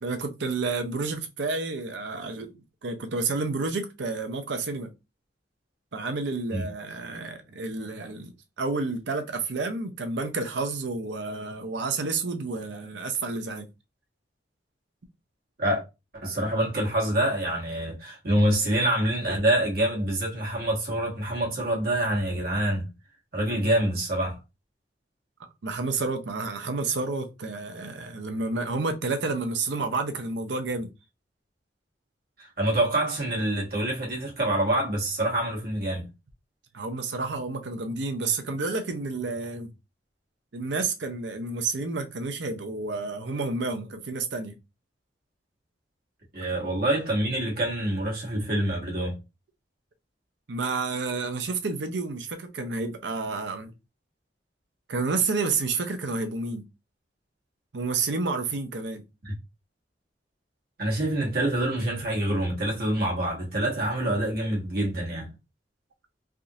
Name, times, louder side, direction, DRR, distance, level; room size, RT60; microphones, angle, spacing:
voice 1, 0.0-2.6 2.8-4.9 5.9-13.7 25.6-30.9 36.7-39.7 40.5-44.5 50.5-53.7 54.9-56.6 57.7-59.0, right 3 dB, 90° right, 0.6 m, -30 dB
voice 2, 16.2-22.8 23.3-24.4 32.4-36.1 46.3-49.2 59.2-59.3 60.8-65.3, right 1 dB, 60° right, 1.3 m, -26 dB
3.5 x 2.5 x 2.7 m
head